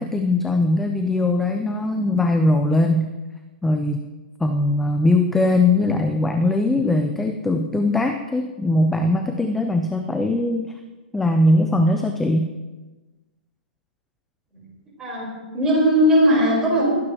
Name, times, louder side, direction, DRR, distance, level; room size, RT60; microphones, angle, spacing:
voice 1, 0.0-3.1 3.6-4.1 4.4-10.7 11.1-12.5, left 2 dB, 5° left, 6 dB, 0.4 m, -20 dB
voice 2, 15.0-16.9, equal, 10° right, -5 dB, 4.4 m, -18 dB
21.0 x 9.7 x 3.0 m, 1.2 s
hypercardioid pair, 160°, 6 cm